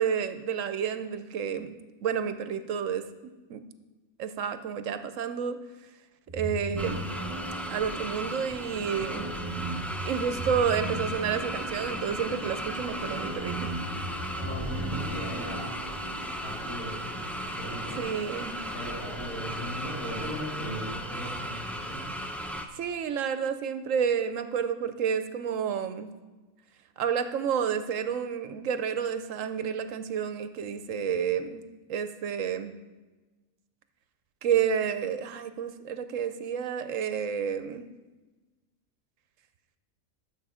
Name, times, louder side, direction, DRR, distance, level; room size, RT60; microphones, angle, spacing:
voice 1, 0.0-1.7 2.0-3.6 4.2-5.6 6.3-7.1 7.7-9.3 10.0-13.7 18.0-18.6 22.7-26.1 27.0-31.6 31.9-32.7 34.4-37.9, right 7 dB, 65° right, 10 dB, 0.9 m, -30 dB
sound 1, 6.3-16.3, right 1 dB, 15° right, 1.7 m, -38 dB
sound 2, 6.8-22.7, equal, ahead, 0.3 m, -36 dB
sound 3, 11.7-20.4, left 1 dB, 35° left, 3.1 m, -45 dB
voice 2, 14.4-15.8 16.4-17.0 17.6-18.0 18.7-22.0, right 1 dB, 80° left, -8 dB, 3.8 m, -38 dB
12.0 x 7.3 x 5.0 m, 1.2 s
omnidirectional pair, 1.5 m